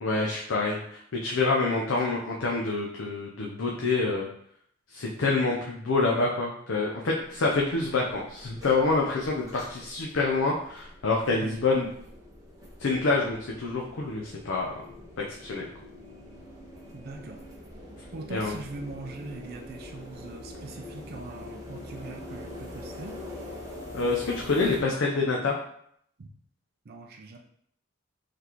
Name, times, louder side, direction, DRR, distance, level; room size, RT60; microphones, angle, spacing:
voice 1, 0.0-4.3 4.9-11.9 12.8-14.7 15.3-15.6 18.3-18.6 23.9-25.5, left 3 dB, 80° left, -2 dB, 0.5 m, -27 dB
sound 1, 7.2-24.8, left 1 dB, 20° right, 1.0 m, -44 dB
voice 2, 16.9-17.5 18.1-23.2 26.2-26.3 26.9-27.4, right 3 dB, 55° right, 2 dB, 0.5 m, -41 dB
3.9 x 3.2 x 2.9 m, 0.69 s
head